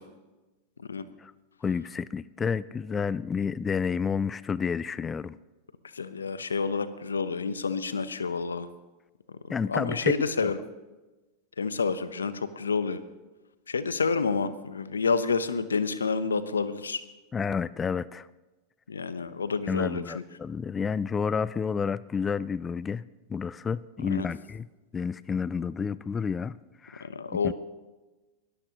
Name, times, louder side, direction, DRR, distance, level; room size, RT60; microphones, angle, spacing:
voice 1, 1.6-5.4 9.5-10.5 17.3-18.3 19.7-24.7 24.9-26.6 26.8-27.1 27.4-27.5, left 6 dB, 20° left, 19 dB, 0.3 m, -30 dB
voice 2, 5.9-8.7 9.7-10.6 11.6-13.0 13.7-17.0 18.9-20.2 24.1-24.3 27.0-27.5, left 5 dB, 85° left, 14 dB, 0.7 m, -29 dB
21.5 x 13.5 x 2.9 m, 1.1 s
hypercardioid pair, 90°, 0 cm